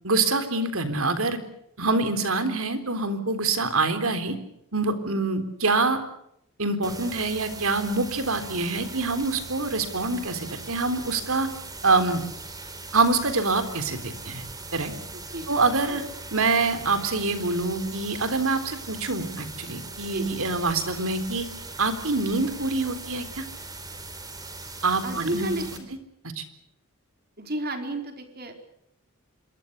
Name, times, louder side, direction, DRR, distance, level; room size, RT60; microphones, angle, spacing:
voice 1, 0.0-1.4 1.8-4.3 4.7-6.0 6.6-11.5 11.8-12.2 12.9-14.5 14.7-14.9 15.5-16.0 16.3-21.5 21.8-23.4 24.8-25.5 26.4-26.5, right 3 dB, 75° right, 9 dB, 3.7 m, -25 dB
sound 1, 6.8-25.8, right 3 dB, 15° right, 3.7 m, -40 dB
voice 2, 15.1-15.5 15.8-16.0 20.1-20.3 25.0-25.9 27.4-28.5, right 1 dB, 45° right, 5 dB, 4.3 m, -32 dB
26.5 x 23.0 x 6.7 m, 0.79 s
head